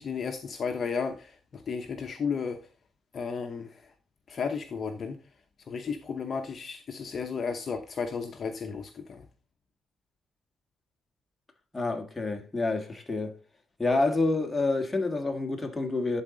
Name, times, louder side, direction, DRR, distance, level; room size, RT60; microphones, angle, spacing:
voice 1, 0.0-2.6 3.1-3.8 4.3-5.2 5.7-9.2, left 5 dB, 45° left, 0.8 m, -33 dB
voice 2, 11.7-13.3 13.8-16.2, left 3 dB, 15° left, 1.6 m, -28 dB
11.0 x 4.1 x 3.8 m
cardioid pair, 90°, 0 cm